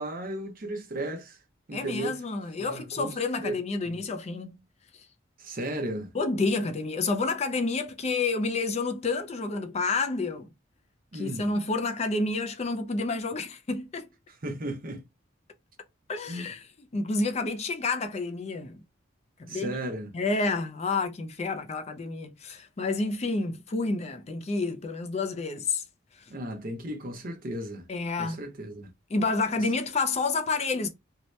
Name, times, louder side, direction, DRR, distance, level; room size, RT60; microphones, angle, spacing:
voice 1, 0.0-1.4 1.7-2.2 2.6-3.6 3.8-4.0 5.4-6.1 11.1-11.5 14.4-15.0 16.3-16.5 19.5-20.1 26.3-27.9 28.2-28.9, right 1 dB, 45° right, 0.6 m, -35 dB
voice 2, 1.7-4.6 6.1-10.5 11.1-14.1 16.1-18.8 19.4-19.7 20.1-25.8 26.2-26.3 27.9-28.4 29.1-30.9, left 3 dB, 30° left, 0.4 m, -29 dB
2.7 x 2.1 x 3.0 m
head